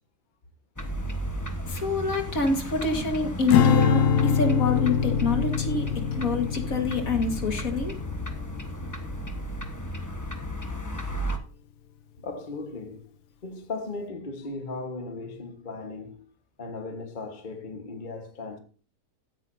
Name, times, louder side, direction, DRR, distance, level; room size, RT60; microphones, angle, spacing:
sound 1, 0.8-11.4, equal, 15° left, 1.2 m, -34 dB
voice 1, 1.7-8.0, left 3 dB, 60° left, 2.2 m, -26 dB
Strum, 3.5-9.9, left 7 dB, 90° left, 1.4 m, -25 dB
voice 2, 12.2-13.1 13.4-16.3 16.6-18.6, left 3 dB, 30° left, 1.4 m, -37 dB
16.0 x 9.1 x 2.7 m
omnidirectional pair, 1.7 m